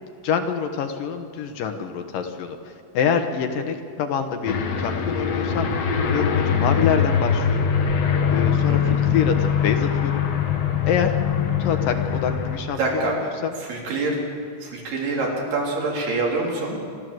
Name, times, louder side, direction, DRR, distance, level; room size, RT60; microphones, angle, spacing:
voice 1, 0.2-5.7 6.0-7.7 8.3-10.2 10.8-11.1 11.6-13.5, left 7 dB, 70° left, 6 dB, 2.6 m, -26 dB
Aircraft, 4.5-12.6, left 7 dB, 55° left, 2.3 m, -22 dB
voice 2, 8.7-9.1 12.8-13.1 13.6-14.2 14.6-16.8, right 3 dB, 85° right, -2 dB, 5.5 m, -26 dB
28.0 x 12.5 x 7.8 m, 2.4 s
omnidirectional pair, 4.4 m